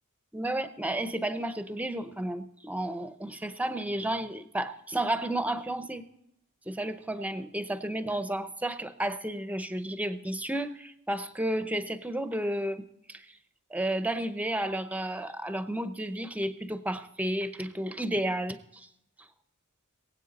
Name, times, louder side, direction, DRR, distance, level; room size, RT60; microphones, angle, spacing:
voice 1, 0.3-6.0 6.7-13.2 13.7-18.9, right 1 dB, 5° right, 11 dB, 0.7 m, -32 dB
22.5 x 8.4 x 4.1 m, 0.81 s
head